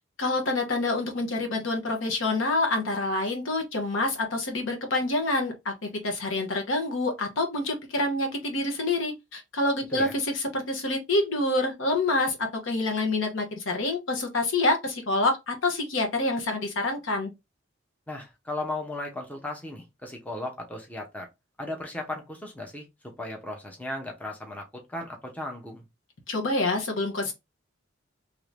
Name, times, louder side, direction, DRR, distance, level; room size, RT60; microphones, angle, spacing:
voice 1, 0.2-17.3 26.3-27.3, left 2 dB, 75° left, 0.9 m, -27 dB
voice 2, 18.1-21.3 21.6-22.9 23.2-25.8, left 1 dB, 10° left, 0.6 m, -36 dB
2.9 x 2.6 x 3.3 m
head